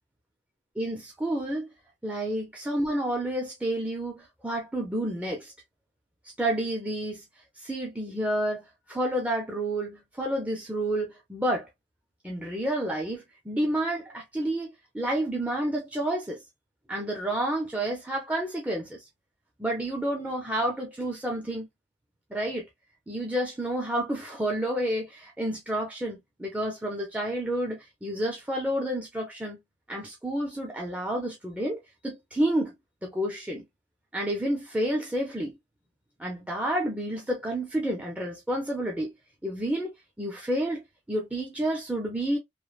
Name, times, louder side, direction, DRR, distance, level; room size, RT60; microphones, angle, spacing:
voice 1, 0.8-1.7 2.0-5.5 6.4-7.2 7.6-8.6 8.9-11.7 12.2-16.4 16.9-19.0 19.6-21.7 22.3-22.7 23.1-29.6 29.9-32.7 33.0-33.6 34.1-35.5 36.2-39.1 39.4-39.9 40.2-40.8 41.1-42.4, right 1 dB, 10° right, 0.6 m, -30 dB
3.2 x 2.0 x 2.4 m
head